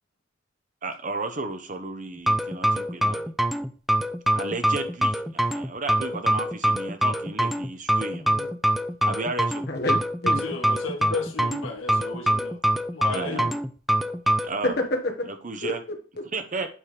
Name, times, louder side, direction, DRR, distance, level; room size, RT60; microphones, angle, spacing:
voice 1, 0.8-3.2 4.3-8.2 9.0-9.6 13.1-13.5 14.4-14.7 15.4-15.8 16.3-16.7, right 3 dB, 40° right, 8 dB, 0.9 m, -33 dB
sound 1, 2.2-14.5, right 1 dB, ahead, 0.3 m, -24 dB
voice 2, 8.1-8.5 9.7-10.4 14.6-15.3 15.6-16.2, left 1 dB, 50° left, 3 dB, 1.4 m, -29 dB
voice 3, 10.2-12.6 12.9-13.6, left 3 dB, 90° left, 2 dB, 1.5 m, -34 dB
8.7 x 3.5 x 4.8 m, 0.39 s
head